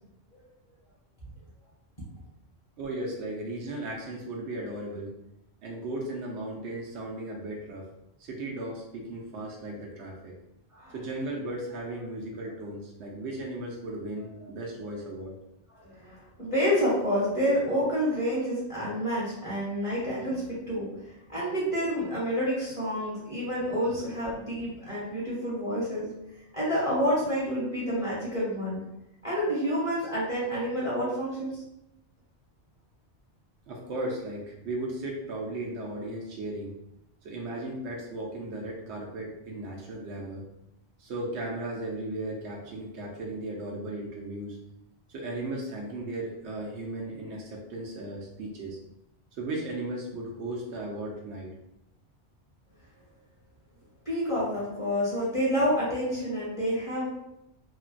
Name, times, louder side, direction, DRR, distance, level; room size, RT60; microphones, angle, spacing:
voice 1, 2.8-5.1 5.6-7.9 8.2-10.3 10.9-15.3 33.7-36.7 37.2-40.4 41.0-44.6 45.1-48.8 49.3-51.5, right 1 dB, 85° right, -2 dB, 0.9 m, -36 dB
voice 2, 15.7-20.9 21.3-26.1 26.5-28.8 29.2-31.6 54.1-57.1, equal, 30° left, -8 dB, 1.0 m, -28 dB
3.2 x 2.2 x 2.4 m, 0.85 s
omnidirectional pair, 1.1 m